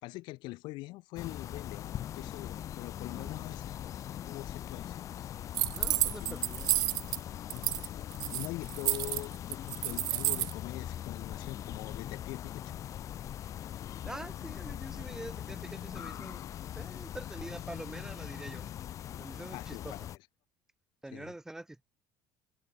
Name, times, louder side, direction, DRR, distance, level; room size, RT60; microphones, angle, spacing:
voice 1, 0.0-3.8 4.3-5.0 5.8-5.9 6.2-6.3 7.5-12.8 19.5-20.1 21.1-21.3, left 21 dB, 70° left, 2.7 m, -43 dB
sound 1, 1.2-20.2, left 11 dB, 40° left, 1.1 m, -41 dB
sound 2, 5.5-7.2 7.5-7.9 8.1-10.5, right 17 dB, 55° right, 0.8 m, -30 dB
voice 2, 5.7-6.7 14.1-16.4 16.8-18.7 19.2-20.0 21.0-21.8, right 1 dB, 5° right, 5.3 m, -45 dB
cardioid pair, 145°, 8 cm